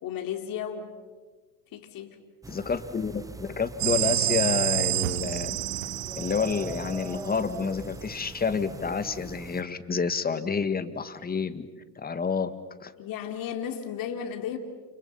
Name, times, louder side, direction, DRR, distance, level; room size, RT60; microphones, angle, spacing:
voice 1, 0.0-1.0 1.7-2.2 13.0-14.6, left 8 dB, 50° left, 5 dB, 3.4 m, -34 dB
sound 1, 2.4-9.6, right 3 dB, 10° right, 1.0 m, -42 dB
voice 2, 2.5-5.6 6.2-11.7 12.0-12.5 12.8-12.9, left 5 dB, 20° left, 11 dB, 1.9 m, -29 dB
sound 2, 3.8-7.5, right 21 dB, 70° right, 0.9 m, -29 dB
30.0 x 29.5 x 5.8 m, 1.4 s
hypercardioid pair, 80°, 42 cm